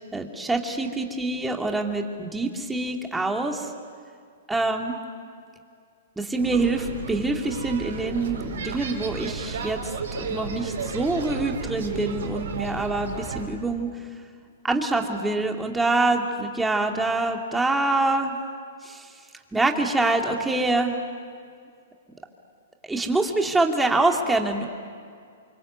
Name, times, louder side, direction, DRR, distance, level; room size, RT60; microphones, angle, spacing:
voice 1, 0.1-3.7 4.5-5.0 6.2-9.9 10.2-13.9 14.6-18.4 18.8-19.1 19.5-21.0 22.8-24.7, right 2 dB, 5° right, 2 dB, 2.6 m, -25 dB
sound 1, 6.4-13.4, right 5 dB, 75° right, 4.8 m, -33 dB
28.5 x 25.0 x 8.2 m, 2.2 s
hypercardioid pair, 130°, 0 cm